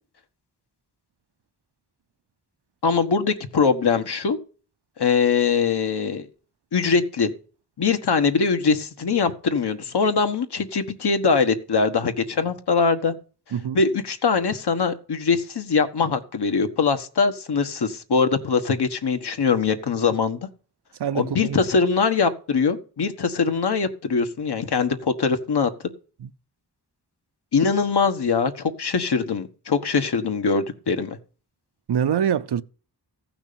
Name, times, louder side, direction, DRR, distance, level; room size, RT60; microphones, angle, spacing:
voice 1, 2.8-4.4 5.0-6.3 6.7-7.3 7.8-13.1 13.7-20.4 21.1-25.7 27.5-31.2, left 5 dB, 75° left, 1.4 m, -22 dB
voice 2, 13.5-13.8 21.0-21.6 26.2-26.3 31.9-32.6, right 8 dB, 75° right, 0.7 m, -24 dB
15.0 x 6.0 x 6.9 m
wide cardioid pair, 80°, 40 cm